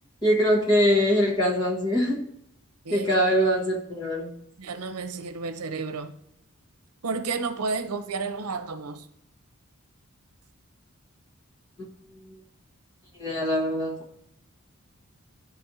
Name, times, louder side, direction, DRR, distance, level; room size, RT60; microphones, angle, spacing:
voice 1, 0.2-2.3 2.9-4.3 13.2-13.9, equal, 20° left, 1.2 m, -23 dB
voice 2, 4.6-6.1 7.0-9.1, right 4 dB, 90° right, 0.7 m, -31 dB
12.0 x 4.2 x 2.7 m
head